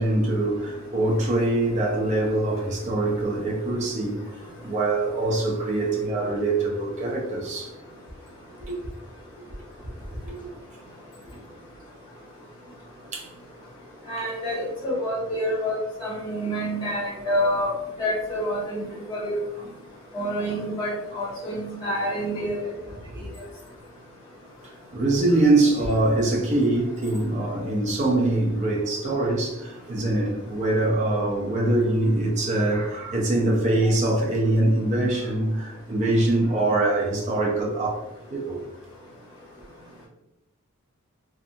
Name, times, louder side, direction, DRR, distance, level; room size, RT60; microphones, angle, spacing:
voice 1, 0.0-4.2 4.6-7.7 8.7-8.8 10.2-10.4 13.1-13.3 24.6-38.0 38.3-38.6, right 2 dB, 35° right, 0.4 m, -23 dB
voice 2, 14.1-17.7 18.0-18.8 19.1-19.4 20.1-22.7, equal, 20° left, 1.1 m, -27 dB
2.5 x 2.3 x 2.7 m
head